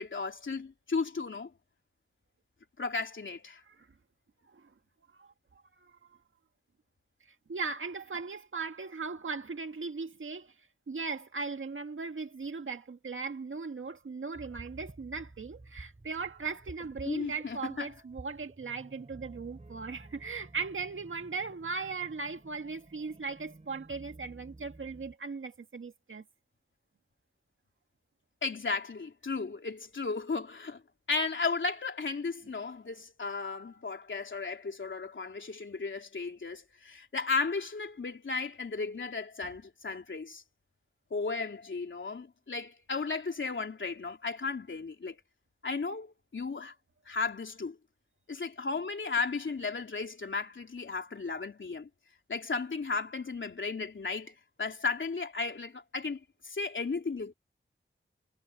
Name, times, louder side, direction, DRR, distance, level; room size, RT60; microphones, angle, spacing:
voice 1, 0.0-1.5 2.8-3.6 17.0-17.9 28.4-30.8 31.1-40.4 41.1-45.2 45.6-46.7 47.1-47.8 48.3-51.9 52.3-57.3, left 4 dB, 70° left, 3.3 m, -35 dB
voice 2, 7.5-10.5 10.9-26.2, right 4 dB, 75° right, 1.8 m, -38 dB
sound 1, 14.3-25.1, right 2 dB, 35° right, 5.0 m, -52 dB
wide cardioid pair, 85°, 21 cm